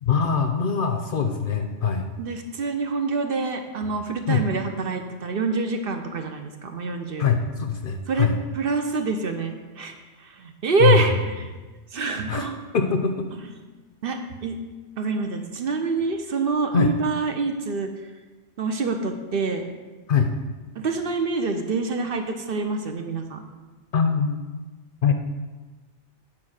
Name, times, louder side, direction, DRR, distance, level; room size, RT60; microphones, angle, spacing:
voice 1, 0.0-2.1 4.3-4.4 7.2-8.3 10.8-11.1 12.3-12.5 12.7-13.3 16.7-16.9 20.1-20.3 23.9-24.4 25.0-25.1, left 6 dB, 55° left, 5 dB, 0.7 m, -22 dB
voice 2, 2.2-7.3 8.1-8.3 8.5-11.3 11.9-12.6 14.0-14.6 15.0-17.9 18.6-19.7 20.8-23.4, right 4 dB, 55° right, 5 dB, 0.8 m, -26 dB
8.9 x 4.2 x 6.4 m, 1.3 s
omnidirectional pair, 1.2 m